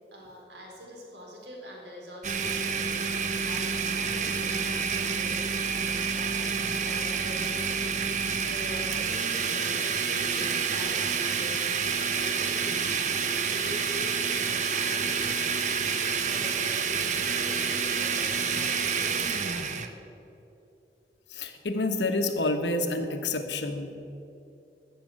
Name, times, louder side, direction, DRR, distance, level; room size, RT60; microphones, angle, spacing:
voice 1, 0.1-15.6 16.1-20.0, equal, 85° right, -1 dB, 3.8 m, -44 dB
Domestic sounds home sounds, 2.2-19.9, right 6 dB, 45° right, 0.8 m, -28 dB
voice 2, 21.3-23.9, left 2 dB, 90° left, 6 dB, 1.3 m, -28 dB
14.0 x 7.1 x 9.1 m, 2.8 s
head